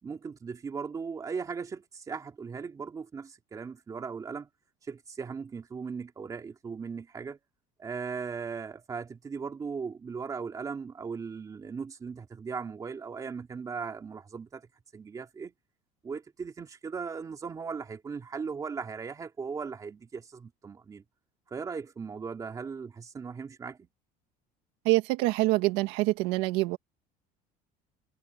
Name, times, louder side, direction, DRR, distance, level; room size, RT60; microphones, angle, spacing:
voice 1, 0.0-4.5 4.8-7.4 7.8-14.7 14.9-15.5 16.0-21.0 21.5-23.9, right 5 dB, 20° right, 3.3 m, -38 dB
voice 2, 24.8-26.8, right 20 dB, 80° right, 1.8 m, -25 dB
cardioid pair, 165°, 17 cm